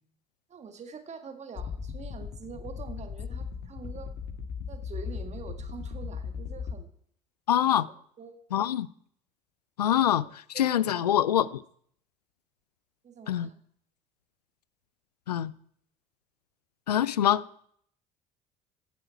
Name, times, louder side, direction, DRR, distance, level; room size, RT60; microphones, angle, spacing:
voice 1, 0.5-4.1 4.7-6.9 7.7-7.9 8.2-8.4 10.0-10.1 10.5-11.1 13.0-13.5, right 5 dB, 35° right, 1.8 m, -45 dB
sound 1, 1.6-6.7, left 6 dB, 50° left, 1.5 m, -37 dB
voice 2, 7.5-7.9 8.5-8.9 9.8-11.6 13.3-13.5 15.3-15.5 16.9-17.4, left 11 dB, 80° left, 0.4 m, -25 dB
15.0 x 9.1 x 4.6 m
figure-of-eight pair, 55°, 20 cm